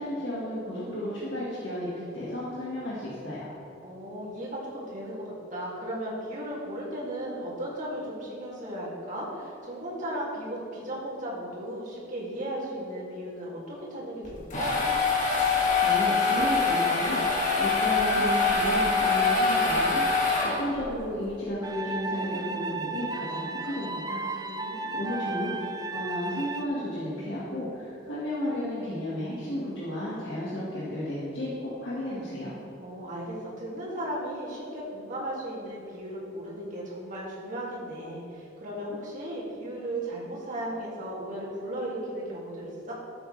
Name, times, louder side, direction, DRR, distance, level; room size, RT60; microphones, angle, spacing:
voice 1, 0.0-3.5 15.8-24.2 24.9-25.5 25.9-32.5, left 1 dB, 75° left, -8 dB, 1.7 m, -33 dB
voice 2, 3.8-5.2 5.5-14.8 24.4-25.1 32.8-42.9, right 1 dB, 40° right, -6 dB, 2.5 m, -36 dB
sound 1, 14.2-20.9, left 4 dB, 40° left, 2.0 m, -24 dB
sound 2, 21.6-26.6, right 3 dB, 20° right, 0.4 m, -34 dB
13.0 x 7.8 x 3.3 m, 2.8 s
head